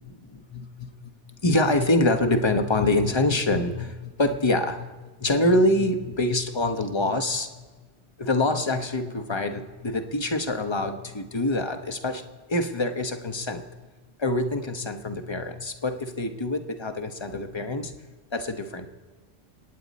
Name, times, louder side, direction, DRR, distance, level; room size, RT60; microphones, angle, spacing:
voice 1, 0.0-7.5 8.2-12.2 12.5-13.6 14.2-17.9 18.3-18.9, left 2 dB, 25° left, 6 dB, 1.0 m, -25 dB
28.0 x 9.4 x 4.2 m, 1.3 s
omnidirectional pair, 1.2 m